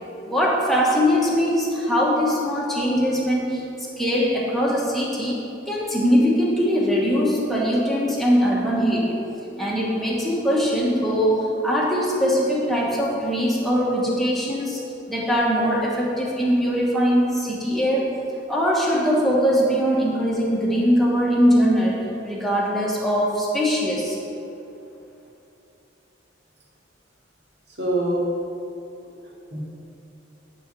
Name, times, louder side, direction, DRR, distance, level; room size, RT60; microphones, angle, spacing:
voice 1, 0.2-3.6 4.0-5.4 5.7-9.1 9.6-14.8 15.1-18.2 18.5-22.0 22.2-24.2, equal, ahead, -5 dB, 1.2 m, -21 dB
voice 2, 27.7-28.2 29.0-29.6, right 1 dB, 55° right, -5 dB, 1.9 m, -26 dB
10.0 x 3.9 x 6.0 m, 2.8 s
head